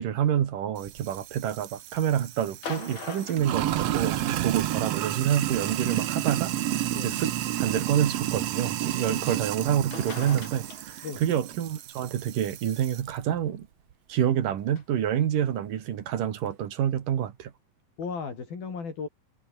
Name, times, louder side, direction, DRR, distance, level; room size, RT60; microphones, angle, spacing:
voice 1, 0.0-7.3 7.6-13.7 14.1-17.5, right 10 dB, 65° right, 3.4 m, -28 dB
Sink (filling or washing), 0.8-13.1, right 13 dB, 85° right, 1.4 m, -31 dB
sound 1, 2.5-4.4 5.7-5.8 6.8-6.9 9.6-9.7 9.9-11.3 14.8-14.9, left 5 dB, 35° left, 2.9 m, -41 dB
voice 2, 18.0-19.1, left 5 dB, 70° left, 7.6 m, -35 dB
omnidirectional pair, 4.3 m